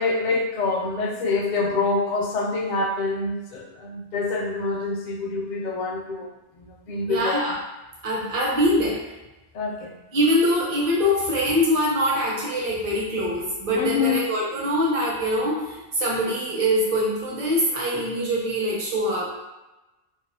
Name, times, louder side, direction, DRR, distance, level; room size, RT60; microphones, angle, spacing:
voice 1, 0.0-6.3 6.6-7.4 9.5-9.9 13.8-14.2, left 3 dB, 55° left, 0 dB, 0.5 m, -26 dB
voice 2, 7.1-7.5 8.0-9.0 10.1-19.4, equal, 40° right, -5 dB, 0.7 m, -23 dB
3.0 x 2.3 x 2.6 m, 1.0 s
omnidirectional pair, 1.1 m